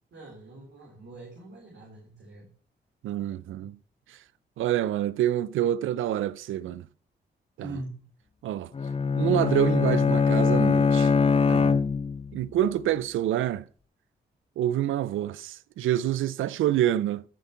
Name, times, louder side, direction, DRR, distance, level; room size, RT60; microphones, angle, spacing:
voice 1, 0.1-2.5 3.6-3.7 7.6-8.0, right 2 dB, 65° right, 3.9 m, -43 dB
voice 2, 3.0-3.8 4.1-4.2 4.6-6.9 7.6-7.7 8.4-8.7 9.2-11.1 11.5-11.8 12.3-13.6 14.6-17.2, right 12 dB, 90° right, 0.5 m, -27 dB
Bowed string instrument, 8.7-12.4, left 5 dB, 30° left, 0.5 m, -22 dB
14.0 x 5.3 x 5.7 m
cardioid pair, 55°, 20 cm